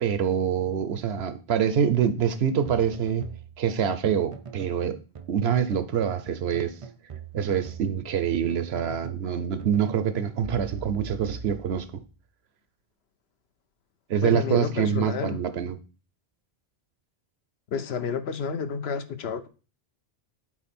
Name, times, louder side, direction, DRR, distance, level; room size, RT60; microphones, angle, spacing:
voice 1, 0.0-3.3 3.6-5.0 5.3-6.7 7.3-12.0 14.1-15.8, right 8 dB, 80° right, 11 dB, 1.0 m, -25 dB
sound 1, 2.6-4.8 5.1-5.9 6.3-9.3 9.6-12.0, right 6 dB, 40° right, 0.5 m, -42 dB
voice 2, 14.2-15.4 17.7-19.5, left 6 dB, 85° left, 11 dB, 1.0 m, -30 dB
8.5 x 4.4 x 4.3 m, 0.34 s
omnidirectional pair, 1.0 m